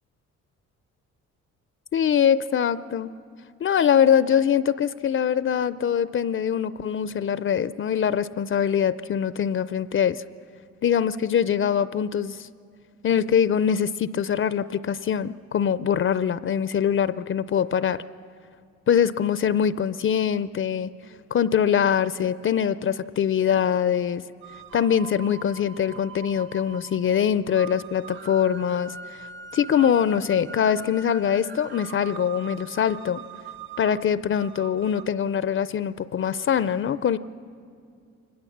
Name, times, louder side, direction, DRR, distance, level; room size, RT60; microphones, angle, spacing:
voice 1, 1.9-3.1 3.6-10.2 10.8-12.5 13.0-18.0 18.9-20.9 21.3-24.2 24.7-33.2 33.8-37.2, left 8 dB, 45° left, 16 dB, 0.5 m, -23 dB
sound 1, 24.4-35.1, right 6 dB, 40° right, 0.7 m, -42 dB
24.0 x 20.0 x 7.2 m, 2.3 s
cardioid pair, 90°, 30 cm